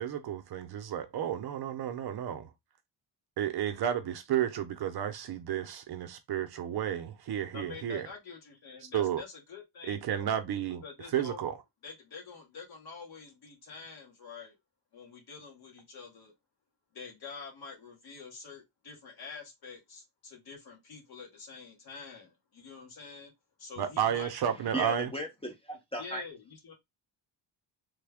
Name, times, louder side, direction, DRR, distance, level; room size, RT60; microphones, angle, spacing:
voice 1, 0.0-2.5 3.4-8.1 8.9-9.2 9.8-10.8 11.1-11.5 23.8-25.1, right 10 dB, 55° right, 0.6 m, -32 dB
voice 2, 7.5-10.4 10.8-11.4 11.8-14.6 14.9-16.3 16.9-23.3 23.6-24.3 26.0-26.7, left 5 dB, 55° left, 1.4 m, -47 dB
voice 3, 24.7-26.2, right 1 dB, 15° left, 0.6 m, -36 dB
3.3 x 2.2 x 3.4 m
wide cardioid pair, 180°, 46 cm